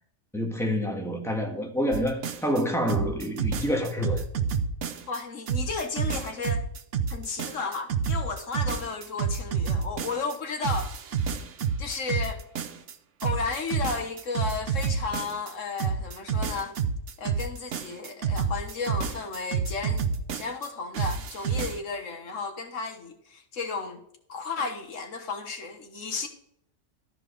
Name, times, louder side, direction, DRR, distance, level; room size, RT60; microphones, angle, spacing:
voice 1, 0.3-4.2, equal, ahead, 1.5 m, -27 dB
sound 1, 1.9-2.6 2.9-5.2 5.5-10.4 10.6-12.9 13.2-15.5 15.8-20.7 20.9-21.8, right 6 dB, 70° right, 1.1 m, -29 dB
voice 2, 5.1-6.6 7.1-10.9 11.8-12.4 13.2-16.7 17.2-20.1 20.3-24.0 24.3-26.3, left 4 dB, 75° left, 1.7 m, -33 dB
13.0 x 4.9 x 5.1 m
omnidirectional pair, 1.3 m